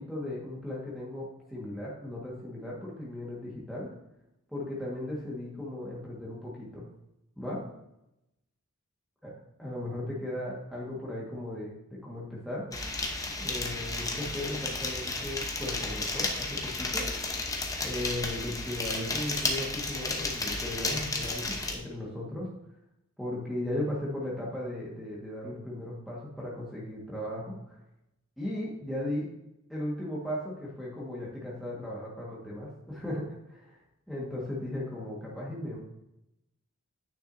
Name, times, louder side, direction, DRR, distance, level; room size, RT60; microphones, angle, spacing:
voice 1, 0.0-3.9 4.5-6.8 7.4-7.6 9.2-9.3 9.6-12.7 13.4-17.1 17.8-22.5 23.2-27.8 28.4-29.3 29.7-33.8 34.1-35.8, left 1 dB, ahead, -5 dB, 1.5 m, -36 dB
sound 1, 12.7-21.7, left 2 dB, 15° left, 0.8 m, -33 dB
9.7 x 6.1 x 2.6 m, 0.84 s
head